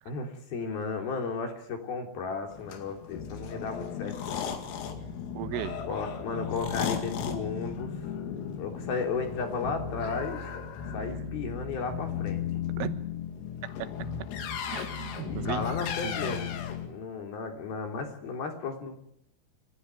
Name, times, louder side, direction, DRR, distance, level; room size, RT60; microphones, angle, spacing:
voice 1, 0.1-4.5 5.9-7.9 8.5-10.4 10.9-12.4 15.3-19.0, left 4 dB, 50° left, 4 dB, 4.8 m, -34 dB
sound 1, 2.5-16.9, left 7 dB, 85° left, 4.9 m, -35 dB
voice 2, 5.4-5.8 11.0-11.3 12.8-13.1 13.8-13.9 14.7-15.7 16.0-16.4, right 13 dB, 85° right, 11 dB, 3.9 m, -37 dB
26.5 x 15.5 x 9.6 m, 0.73 s
omnidirectional pair, 5.7 m